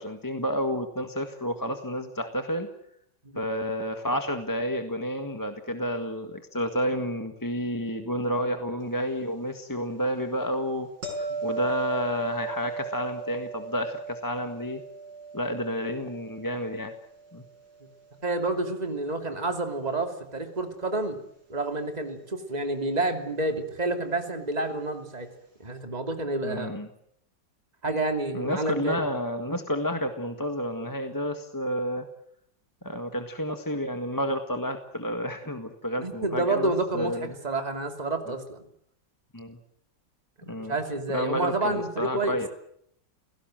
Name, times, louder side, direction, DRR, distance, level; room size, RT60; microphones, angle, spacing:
voice 1, 0.0-2.7 3.4-10.9 11.2-14.8 15.3-16.9 17.3-17.4 26.4-26.9 28.3-32.1 32.8-37.3 39.3-39.6 40.5-40.8 41.1-42.5, equal, 10° left, 6 dB, 1.6 m, -30 dB
sound 1, 11.0-18.0 23.3-23.4, right 4 dB, 75° right, 6.8 m, -37 dB
voice 2, 18.2-21.2 21.5-25.3 25.6-26.7 27.8-29.0 36.0-38.6 40.4-42.4, right 2 dB, 20° right, 5 dB, 2.9 m, -29 dB
30.0 x 17.5 x 7.7 m, 0.72 s
omnidirectional pair, 2.0 m